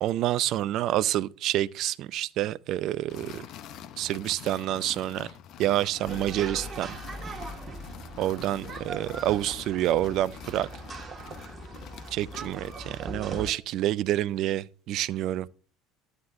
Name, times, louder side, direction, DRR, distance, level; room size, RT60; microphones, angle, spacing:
voice 1, 0.0-3.4 4.0-5.3 5.6-6.9 8.2-10.7 12.1-15.5, right 13 dB, 55° right, 0.4 m, -28 dB
sound 1, 3.1-13.1, left 10 dB, 55° left, 0.7 m, -46 dB
sound 2, 6.0-13.5, right 3 dB, 35° right, 1.6 m, -40 dB
11.0 x 9.5 x 2.5 m
hypercardioid pair, 65°, 0 cm